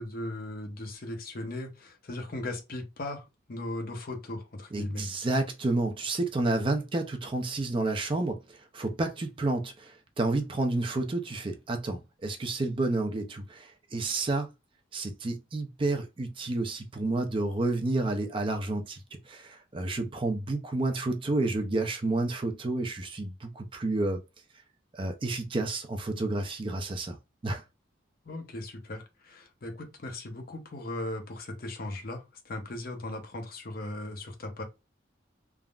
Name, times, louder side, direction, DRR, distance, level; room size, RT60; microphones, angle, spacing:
voice 1, 0.0-5.1 28.2-34.6, left 1 dB, 50° left, 0.7 m, -38 dB
voice 2, 4.7-14.5 14.9-24.2 24.9-27.2 27.4-27.6, right 2 dB, 25° right, 0.4 m, -30 dB
3.5 x 2.1 x 2.3 m
head